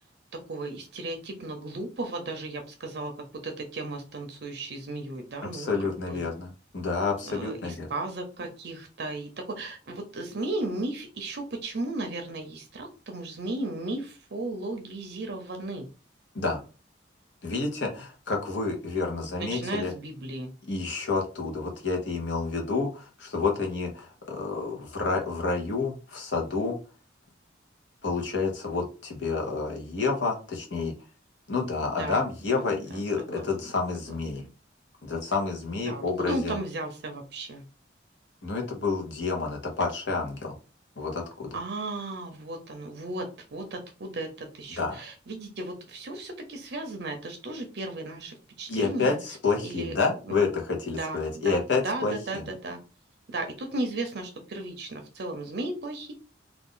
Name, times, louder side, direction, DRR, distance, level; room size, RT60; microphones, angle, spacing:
voice 1, 0.5-3.1 3.4-5.7 6.0-6.3 7.3-15.9 19.4-20.5 31.9-32.2 32.5-33.5 34.4-34.5 35.8-37.6 41.5-49.2 49.6-50.0 50.2-50.4 50.9-52.8 53.3-56.1, right 2 dB, 55° right, 5 dB, 0.5 m, -35 dB
voice 2, 5.5-7.9 16.3-16.6 17.4-19.9 20.7-26.8 28.0-30.9 31.5-34.4 35.0-36.5 38.4-40.6 41.0-41.5 44.8-45.0 48.7-52.4, left 4 dB, 65° left, 1 dB, 0.9 m, -29 dB
2.5 x 2.4 x 3.7 m, 0.34 s
head